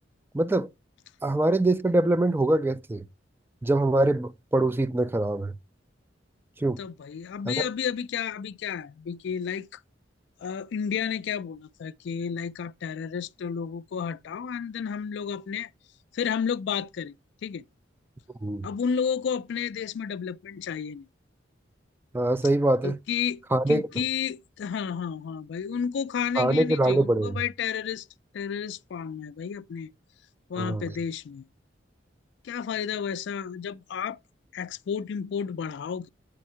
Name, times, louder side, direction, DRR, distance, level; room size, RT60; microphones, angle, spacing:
voice 1, 0.3-0.7 1.2-3.0 3.6-5.5 6.6-6.8 7.5-7.6 18.4-18.7 22.1-23.0 23.5-23.9 26.4-27.4 30.6-30.8, right 2 dB, 10° right, 0.3 m, -23 dB
voice 2, 6.8-9.8 10.4-15.7 16.1-17.1 17.4-17.6 18.6-21.1 22.8-28.1 28.3-29.9 30.5-31.4 32.4-34.2 34.5-36.1, left 7 dB, 65° left, 0.3 m, -31 dB
8.5 x 3.6 x 4.3 m
head